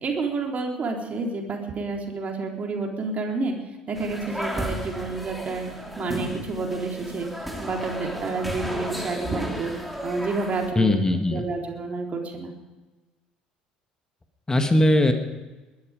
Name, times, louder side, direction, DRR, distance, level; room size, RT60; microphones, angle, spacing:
voice 1, 0.0-3.5 3.9-5.6 6.0-7.3 7.6-9.7 10.0-10.9 11.3-12.5, right 3 dB, 35° right, 1 dB, 3.7 m, -29 dB
sound 1, 3.9-10.7, equal, ahead, 2.6 m, -34 dB
voice 2, 10.8-11.5 14.5-15.1, left 1 dB, 15° left, 6 dB, 1.8 m, -20 dB
21.5 x 12.0 x 5.1 m, 1.2 s
figure-of-eight pair, 60°, 4 cm